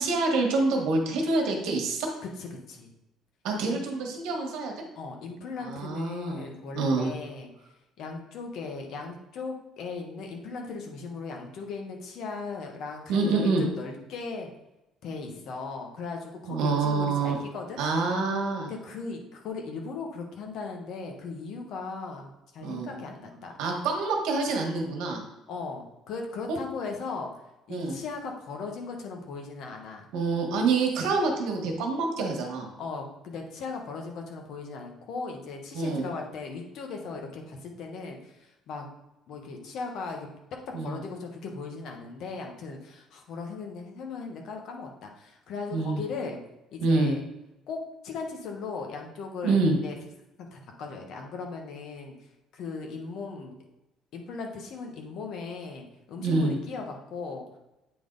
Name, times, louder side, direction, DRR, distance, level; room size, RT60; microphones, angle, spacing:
voice 1, 0.0-2.1 3.4-4.7 5.6-6.4 6.7-7.1 13.1-13.6 16.5-17.3 17.8-18.7 22.6-22.9 23.6-25.2 26.5-26.6 27.7-28.0 30.1-32.7 35.7-36.1 40.7-41.0 45.7-46.0 46.8-47.1 49.4-49.8 56.2-56.6, right 3 dB, 80° right, 2 dB, 1.4 m, -26 dB
voice 2, 2.4-2.9 3.6-3.8 4.9-7.5 8.0-14.5 15.0-17.8 18.7-23.5 25.5-27.3 27.7-30.1 32.8-38.9 39.3-40.3 40.8-46.4 46.7-47.2 47.7-50.0 50.5-52.1 52.5-53.5 54.1-57.4, left 4 dB, 50° left, 2 dB, 1.1 m, -38 dB
8.3 x 3.6 x 3.9 m, 0.94 s
cardioid pair, 175°, 0 cm